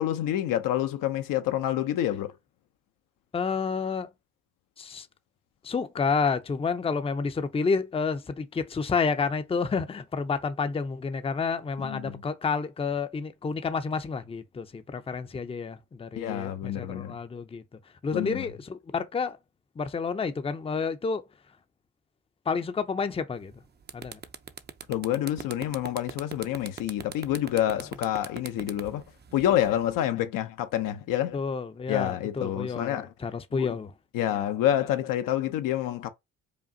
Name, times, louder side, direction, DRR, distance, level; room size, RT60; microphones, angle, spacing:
voice 1, 0.0-2.3 11.8-12.2 16.1-17.2 18.1-18.4 24.9-29.0 29.3-31.4 31.9-33.1 33.5-33.8 34.1-36.1, left 12 dB, 70° left, 0.7 m, -28 dB
voice 2, 3.3-4.1 4.8-5.1 5.6-17.6 18.0-19.4 19.8-21.2 22.5-23.5 23.9-24.2 31.3-33.9, left 5 dB, 15° left, 0.5 m, -30 dB
sound 1, 23.4-23.5 23.8-29.9, right 7 dB, 30° right, 0.6 m, -40 dB
5.1 x 2.4 x 2.7 m
supercardioid pair, 65°, 34 cm